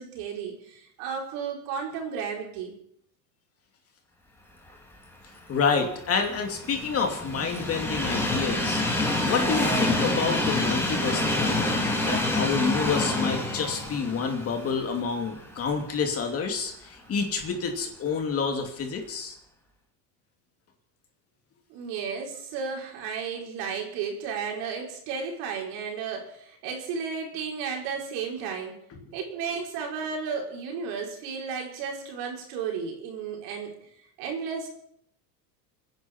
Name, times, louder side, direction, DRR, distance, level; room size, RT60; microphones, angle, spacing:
voice 1, 0.0-2.7 21.7-28.8 29.1-33.8 34.2-34.7, right 6 dB, 55° right, 0 dB, 4.9 m, -33 dB
voice 2, 5.5-11.7 12.1-19.4 29.0-29.1, left 5 dB, 30° left, 3 dB, 2.8 m, -28 dB
Train, 5.7-15.8 16.2-16.3 17.4-17.5, left 2 dB, 5° left, 3.3 m, -27 dB
29.0 x 10.5 x 4.5 m, 0.71 s
supercardioid pair, 125°, 48 cm